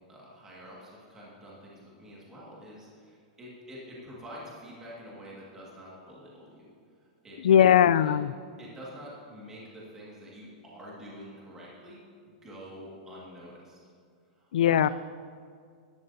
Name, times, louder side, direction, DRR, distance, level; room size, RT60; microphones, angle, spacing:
voice 1, 0.1-6.7 7.2-8.1 8.6-13.8 14.3-14.5 14.8-14.9, equal, 15° right, -5 dB, 1.8 m, -47 dB
voice 2, 7.4-8.3 14.5-14.9, left 9 dB, 90° left, 17 dB, 0.3 m, -19 dB
13.5 x 11.5 x 2.7 m, 2.1 s
supercardioid pair, 170°, 4 cm